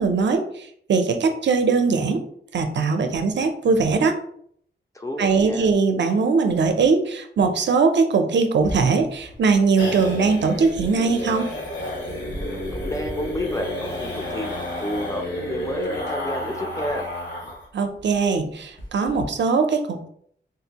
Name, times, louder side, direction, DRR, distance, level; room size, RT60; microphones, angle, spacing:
voice 1, 0.0-2.2 2.5-4.2 5.2-11.5 17.7-20.1, right 4 dB, 70° right, 6 dB, 0.5 m, -21 dB
voice 2, 4.9-5.7 12.5-17.1, left 1 dB, 15° left, 3 dB, 0.4 m, -30 dB
sound 1, 8.6-17.7 18.0-18.1 18.4-18.5 18.8-19.2, left 1 dB, 80° left, 1.4 m, -31 dB
3.7 x 2.6 x 2.8 m, 0.63 s
wide cardioid pair, 175°, 19 cm